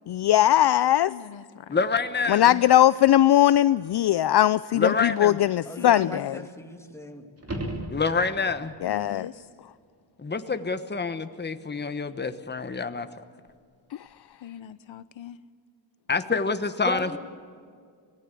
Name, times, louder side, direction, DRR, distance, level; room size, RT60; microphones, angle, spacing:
voice 1, 0.1-1.1 2.3-6.4 8.8-9.3 13.9-14.0, left 12 dB, 60° left, 16 dB, 0.5 m, -20 dB
voice 2, 1.1-1.9 5.8-6.2 8.9-9.4 14.4-15.4, left 10 dB, 80° left, 13 dB, 1.0 m, -41 dB
voice 3, 1.7-2.6 4.7-5.4 7.9-8.7 10.2-13.1 16.1-17.2, left 4 dB, 25° left, 9 dB, 1.2 m, -27 dB
voice 4, 5.6-7.3 16.8-17.2, left 1 dB, 5° left, 3 dB, 2.5 m, -36 dB
sound 1, 7.4-8.6 13.5-13.6, right 1 dB, 30° right, 3.1 m, -34 dB
24.0 x 19.0 x 8.5 m, 2.2 s
wide cardioid pair, 120°, 45 cm